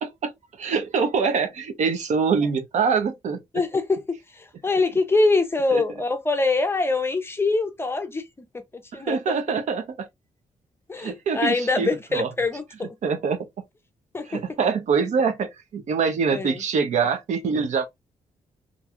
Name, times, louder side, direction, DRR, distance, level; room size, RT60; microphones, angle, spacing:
voice 1, 0.0-0.3 0.6-3.6 5.7-5.8 8.9-10.1 11.0-12.3 13.0-13.5 14.2-17.9, right 5 dB, 65° right, 0.6 m, -24 dB
voice 2, 3.5-8.5 8.9-9.2 10.9-13.0 14.1-14.4 16.3-16.6, left 3 dB, 20° left, 0.5 m, -24 dB
2.6 x 2.2 x 2.8 m
wide cardioid pair, 135°, 13 cm